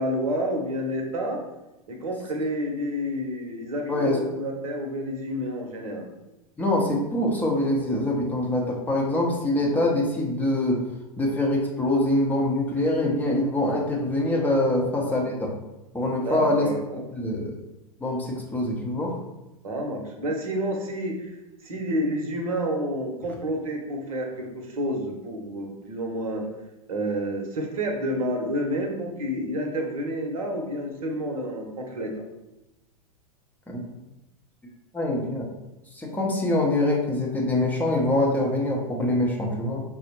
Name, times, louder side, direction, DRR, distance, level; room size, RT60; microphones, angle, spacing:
voice 1, 0.0-1.4 1.9-6.1 14.7-15.2 16.2-17.0 19.6-21.3 21.6-26.4 26.9-32.1, equal, 65° right, 3 dB, 0.8 m, -29 dB
voice 2, 6.6-10.8 11.2-15.5 15.9-16.7 17.1-17.6 18.0-19.1 33.7-33.9 34.9-35.4 35.9-39.8, left 1 dB, 10° left, -2 dB, 0.6 m, -24 dB
4.8 x 2.0 x 3.0 m, 0.96 s
figure-of-eight pair, 95°, 19 cm